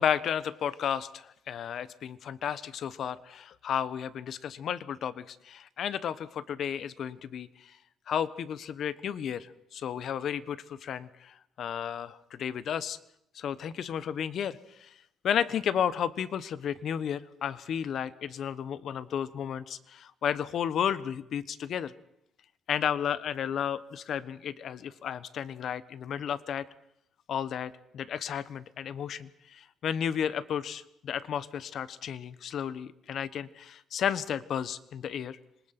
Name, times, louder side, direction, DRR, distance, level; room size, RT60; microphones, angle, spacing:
voice 1, 0.0-7.8 8.1-13.0 13.3-14.9 15.2-21.9 22.7-26.7 27.3-35.4, left 8 dB, 65° left, 16 dB, 1.1 m, -33 dB
26.5 x 20.0 x 6.0 m, 0.77 s
cardioid pair, 90°, 0 cm